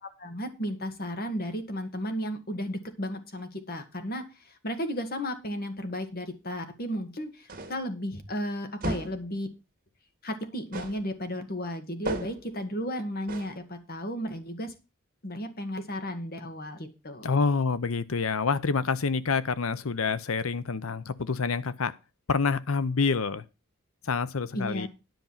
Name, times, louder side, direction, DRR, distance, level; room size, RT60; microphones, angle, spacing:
voice 1, 0.0-9.5 10.2-14.7 15.2-17.3 24.5-24.9, equal, 45° left, 2.0 m, -34 dB
sound 1, 7.5-7.9 8.8-9.3 10.7-11.1 12.1-12.5 13.3-13.6, right 2 dB, 40° right, 2.1 m, -35 dB
voice 2, 17.2-22.0 22.3-23.4 24.0-24.9, left 4 dB, 70° left, 0.7 m, -27 dB
10.5 x 5.3 x 7.3 m
head